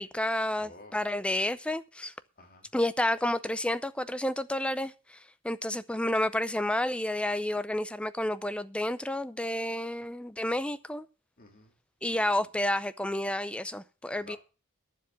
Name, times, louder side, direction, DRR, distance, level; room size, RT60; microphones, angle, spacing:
voice 1, 0.0-2.1 2.7-11.1 12.0-14.4, left 1 dB, 5° left, 0.5 m, -30 dB
voice 2, 0.6-1.0 2.4-2.7 11.4-11.7 12.1-12.5 14.2-14.4, left 3 dB, 45° left, 2.6 m, -52 dB
11.0 x 7.4 x 6.9 m
head